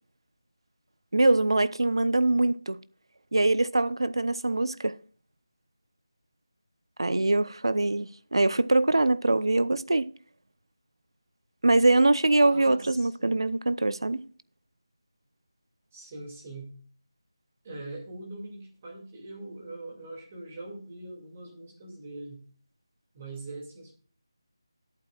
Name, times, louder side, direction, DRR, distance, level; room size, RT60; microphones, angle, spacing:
voice 1, 1.1-2.8 3.3-4.9 7.0-10.1 11.6-14.2, right 2 dB, 75° right, 0.8 m, -23 dB
voice 2, 12.4-13.3 15.9-16.7 17.6-22.4 23.1-23.9, right 2 dB, 20° right, 2.4 m, -42 dB
19.0 x 8.6 x 2.4 m
figure-of-eight pair, 175°, 3 cm